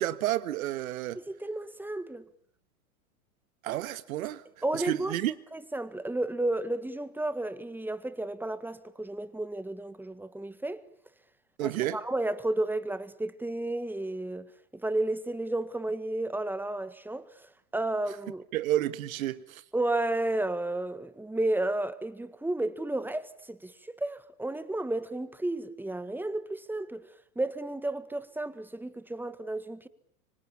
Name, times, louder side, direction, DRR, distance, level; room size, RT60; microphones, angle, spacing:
voice 1, 0.0-1.2 3.6-4.4 4.7-5.3 11.6-12.0 18.5-19.6, right 14 dB, 65° right, 1.8 m, -30 dB
voice 2, 1.1-2.2 4.6-5.2 5.5-10.8 11.6-18.5 19.7-27.0 27.3-29.9, right 2 dB, 5° right, 1.7 m, -32 dB
26.0 x 24.5 x 8.7 m
hypercardioid pair, 105°, 44 cm